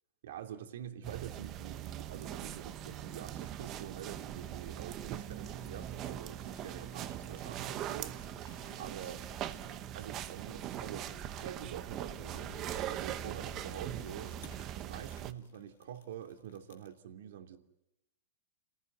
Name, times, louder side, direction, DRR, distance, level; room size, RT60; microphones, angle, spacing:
voice 1, 0.2-8.5 8.8-9.2 9.9-17.6, right 10 dB, 65° right, 6 dB, 3.0 m, -46 dB
sound 1, 1.0-15.3, right 11 dB, 25° right, 1.0 m, -41 dB
Fire, 1.8-17.0, left 9 dB, 70° left, 2.1 m, -57 dB
29.0 x 18.5 x 9.4 m, 0.90 s
supercardioid pair, 165°, 0 cm